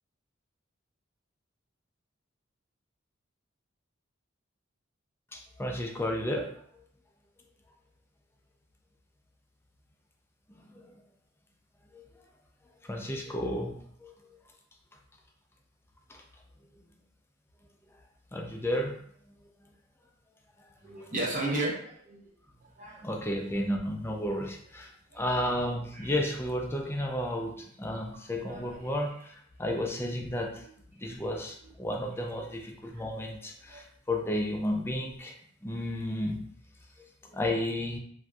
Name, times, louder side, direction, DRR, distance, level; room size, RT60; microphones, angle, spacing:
voice 1, 5.3-6.5 10.7-10.8 11.9-12.0 12.8-14.1 16.1-16.2 18.3-19.0 23.0-30.6 31.0-35.4 35.6-36.4 37.3-38.0, left 1 dB, 10° left, 1 dB, 0.4 m, -32 dB
voice 2, 20.8-22.3 22.8-23.3 25.1-25.7 25.9-26.1 28.4-28.9 30.6-30.7 31.0-31.2 31.6-31.7 32.9-33.0 33.7-33.8, right 2 dB, 45° right, -3 dB, 0.7 m, -36 dB
3.3 x 2.6 x 2.3 m, 0.63 s
head